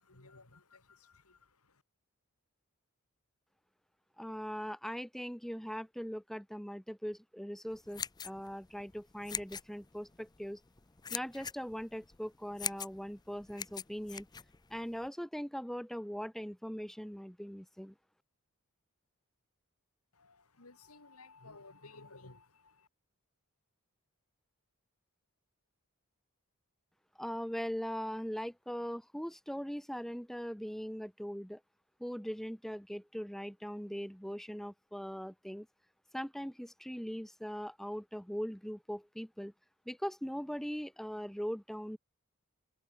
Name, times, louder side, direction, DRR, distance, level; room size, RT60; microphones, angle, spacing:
voice 1, 0.0-1.8 20.1-22.9, left 3 dB, 85° left, 3.2 m, -57 dB
voice 2, 4.2-10.6 11.1-14.3 14.7-17.9 27.2-31.6 32.0-35.7 36.1-39.5 39.9-42.0, equal, ahead, 1.2 m, -40 dB
sound 1, 7.7-15.1, left 7 dB, 20° left, 0.6 m, -43 dB
head